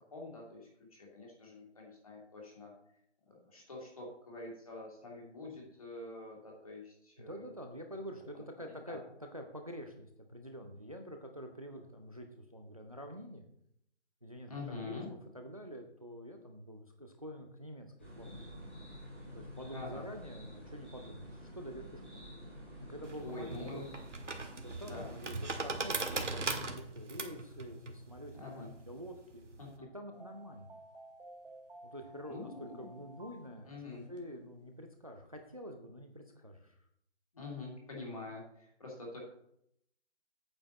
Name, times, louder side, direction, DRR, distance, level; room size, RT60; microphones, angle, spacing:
voice 1, 0.1-2.7 3.3-7.5 8.3-9.0 14.5-15.1 19.7-20.0 23.2-23.9 24.8-25.1 25.5-25.7 28.3-28.7 29.6-29.9 32.3-33.0 33.6-34.1 37.3-39.2, left 3 dB, 30° left, -2 dB, 2.3 m, -46 dB
voice 2, 7.2-9.0 9.3-13.4 14.2-14.5 14.8-18.5 19.2-22.2 22.8-23.8 24.6-29.5 29.9-30.7 31.8-33.8 34.1-36.8, equal, 30° right, 5 dB, 0.6 m, -47 dB
sound 1, 18.0-26.6, equal, 10° left, 1.2 m, -50 dB
sound 2, 23.0-29.7, right 3 dB, 85° right, 1.9 m, -39 dB
sound 3, 30.1-34.3 34.7-34.8 35.1-35.5, right 2 dB, 50° right, 2.2 m, -54 dB
8.8 x 8.1 x 4.1 m, 0.75 s
figure-of-eight pair, 180°, 36 cm